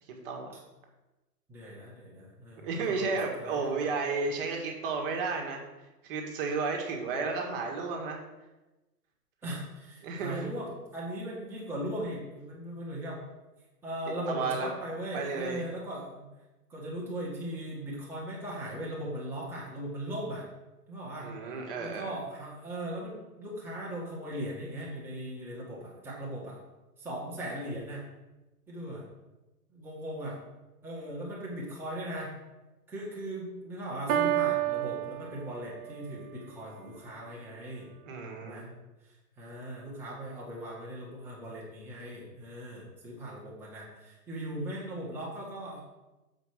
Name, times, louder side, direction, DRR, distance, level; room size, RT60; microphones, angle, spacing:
voice 1, 0.2-0.5 2.6-5.6 6.0-8.2 10.0-10.4 14.3-14.7 15.1-15.7 21.2-22.1 38.1-38.7, right 4 dB, 35° right, 2 dB, 1.8 m, -32 dB
voice 2, 1.5-3.7 9.4-13.2 13.8-16.2 16.7-20.4 20.9-21.3 21.8-26.6 27.0-28.0 28.7-29.0 29.7-30.4 30.8-32.3 32.9-37.9 38.4-38.7 39.4-45.8, right 1 dB, 5° right, -6 dB, 1.4 m, -39 dB
Piano, 34.1-36.1, right 12 dB, 65° right, 1.2 m, -30 dB
7.3 x 5.2 x 6.4 m, 1.1 s
hypercardioid pair, 145°, 48 cm